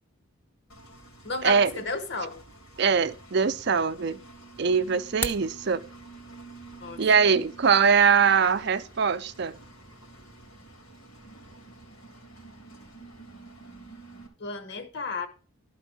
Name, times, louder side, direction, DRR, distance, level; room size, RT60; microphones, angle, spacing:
Engine, 0.7-14.3, right 2 dB, 75° left, 2.9 m, -49 dB
voice 1, 1.2-2.4 6.8-7.0 14.4-15.3, left 3 dB, 50° left, 1.2 m, -33 dB
voice 2, 2.8-4.2 4.6-5.8 7.0-9.6, right 6 dB, 50° right, 0.5 m, -22 dB
sound 1, 5.0-5.5, left 1 dB, 10° left, 0.5 m, -33 dB
12.0 x 4.6 x 6.1 m
head